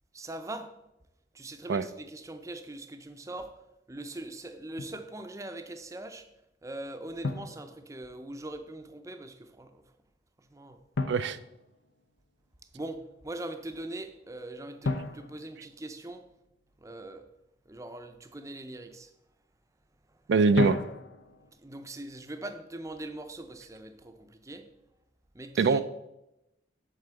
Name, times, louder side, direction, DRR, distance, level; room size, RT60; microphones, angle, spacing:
voice 1, 0.1-0.8 1.3-3.6 3.9-6.3 6.6-9.8 10.4-10.8 12.7-16.3 16.8-17.2 17.7-19.1 20.1-20.2 21.6-24.7 25.3-25.8, right 1 dB, 15° right, 0.5 m, -41 dB
Drum, 4.8-5.1 7.2-8.4 11.0-12.4 14.8-16.6 20.6-21.5, left 3 dB, 75° left, 0.6 m, -35 dB
voice 2, 11.1-11.4 20.3-20.8 25.6-25.8, right 4 dB, 70° right, 0.4 m, -23 dB
8.2 x 3.8 x 6.8 m
head